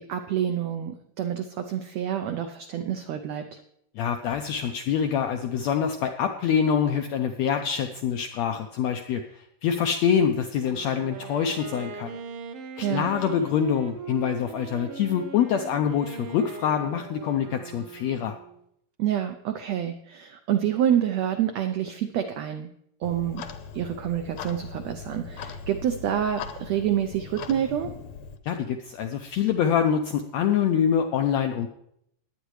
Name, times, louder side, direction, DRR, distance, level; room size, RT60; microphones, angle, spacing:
voice 1, 0.0-3.6 12.8-13.1 19.0-22.7 23.0-23.4 23.7-27.9, right 10 dB, 85° right, 7 dB, 1.5 m, -27 dB
voice 2, 4.0-12.2 12.8-18.4 28.5-31.7, left 8 dB, 90° left, 6 dB, 1.5 m, -25 dB
Wind instrument woodwind instrument, 10.5-18.6, right 5 dB, 70° right, 1.2 m, -40 dB
Clock, 23.0-28.4, left 6 dB, 70° left, 1.8 m, -40 dB
20.0 x 9.0 x 3.2 m, 0.73 s
omnidirectional pair, 3.9 m